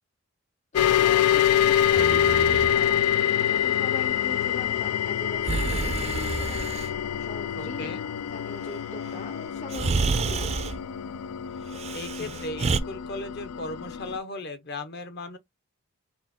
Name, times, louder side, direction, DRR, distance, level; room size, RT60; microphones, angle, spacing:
voice 1, 0.7-6.7 7.2-10.5 12.2-12.4, left 3 dB, 30° left, 0.5 m, -42 dB
sound 1, 0.8-14.2, left 10 dB, 85° left, 0.3 m, -26 dB
Breathing, 1.8-2.7 5.4-6.9 9.1-9.2 9.7-10.8 11.7-12.8, right 4 dB, 30° right, 0.4 m, -29 dB
voice 2, 7.5-8.1 11.9-15.4, left 2 dB, 50° left, 0.9 m, -37 dB
4.3 x 2.6 x 3.6 m
head